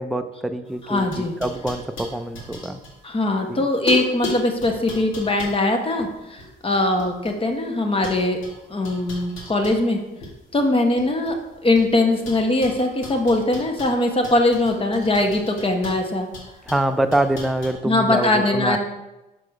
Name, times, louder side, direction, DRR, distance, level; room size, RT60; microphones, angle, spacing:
voice 1, 0.0-2.8 3.5-3.7 16.7-18.8, right 1 dB, ahead, 7 dB, 0.4 m, -25 dB
sound 1, 0.7-3.5 3.9-7.6 8.0-10.3 10.6-11.9 12.2-17.7, left 2 dB, 80° left, 2.1 m, -36 dB
voice 2, 0.9-1.3 3.0-8.4 8.7-10.0 10.5-11.4 11.6-16.3 17.8-18.8, left 2 dB, 30° left, 4 dB, 1.2 m, -21 dB
6.3 x 4.8 x 4.7 m, 1.0 s
cardioid pair, 90°, 20 cm